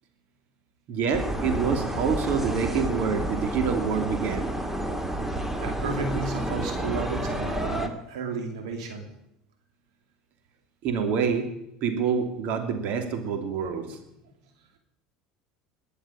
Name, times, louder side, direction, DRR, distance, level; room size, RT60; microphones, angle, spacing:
voice 1, 0.9-4.5 10.8-11.5 11.8-14.0, right 6 dB, 60° right, 5 dB, 3.0 m, -27 dB
sound 1, 1.1-7.9, right 1 dB, 10° right, 2.0 m, -30 dB
voice 2, 5.6-9.1, right 4 dB, 80° right, 3 dB, 2.7 m, -33 dB
21.5 x 7.2 x 8.9 m, 0.83 s
hypercardioid pair, 80°, 3 cm